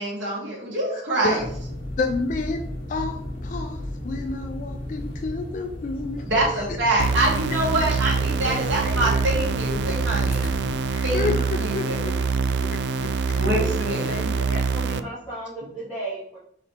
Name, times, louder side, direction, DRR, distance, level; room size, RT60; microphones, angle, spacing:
voice 1, 0.0-1.4 6.3-10.4 11.0-12.0 13.4-14.3, right 1 dB, 85° right, -5 dB, 1.9 m, -25 dB
voice 2, 0.9-1.5 2.0-6.2 10.9-12.2 12.6-13.5, left 3 dB, 40° left, 4 dB, 0.3 m, -30 dB
sound 1, 1.4-10.8, left 1 dB, 80° left, 1.3 m, -34 dB
sound 2, 7.0-15.0, right 4 dB, 60° right, 0.3 m, -25 dB
voice 3, 8.4-9.4 14.0-16.4, right 1 dB, 5° left, -14 dB, 1.8 m, -35 dB
4.3 x 4.1 x 2.8 m, 0.69 s
head